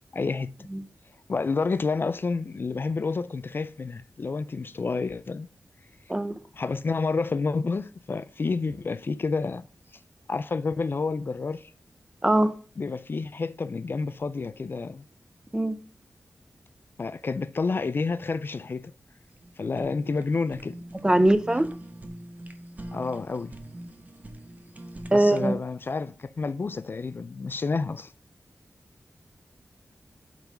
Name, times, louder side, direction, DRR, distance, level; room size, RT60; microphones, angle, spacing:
voice 1, 0.1-0.5 1.3-5.5 6.5-9.7 10.3-11.7 12.8-15.0 17.0-18.9 19.6-20.7 21.0-21.1 22.9-23.5 25.1-28.1, left 4 dB, 45° left, 0.3 m, -29 dB
Fire, 19.3-25.6, right 1 dB, 30° right, 0.9 m, -43 dB
voice 2, 21.0-21.7 25.1-25.5, right 1 dB, 15° right, 0.7 m, -21 dB
7.2 x 3.9 x 5.2 m
wide cardioid pair, 95°, 5 cm